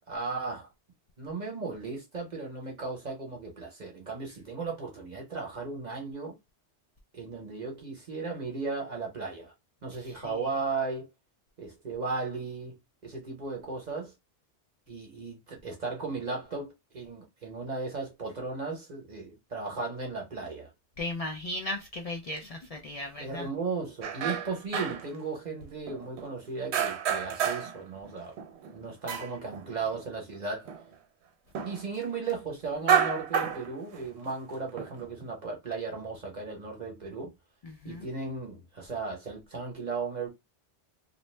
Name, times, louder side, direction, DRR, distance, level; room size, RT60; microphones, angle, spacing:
voice 1, 0.1-0.7 1.2-6.3 7.1-9.5 9.8-11.1 11.6-12.8 13.0-14.1 14.9-20.7 23.2-28.3 28.7-30.7 31.6-37.3 37.8-40.3, right 4 dB, 45° right, 0.9 m, -36 dB
voice 2, 21.0-23.4 37.9-38.0, left 2 dB, 60° left, 0.3 m, -36 dB
sound 1, 24.0-25.2 25.6-26.3 26.7-27.8 28.0-30.0 30.3-30.4 30.7-30.8 31.5-31.8 32.7-34.3 34.8-35.3, right 7 dB, 75° right, 0.8 m, -30 dB
2.6 x 2.1 x 3.1 m
omnidirectional pair, 1.1 m